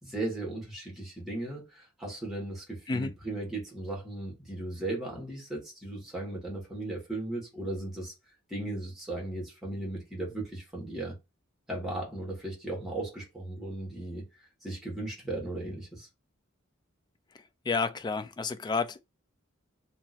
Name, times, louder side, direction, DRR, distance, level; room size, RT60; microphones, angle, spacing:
voice 1, 0.0-8.1 8.5-11.1 11.7-14.2 14.6-16.1, right 2 dB, ahead, 1.5 m, -36 dB
voice 2, 17.3-19.0, left 4 dB, 20° left, 0.3 m, -31 dB
2.9 x 2.4 x 4.1 m
head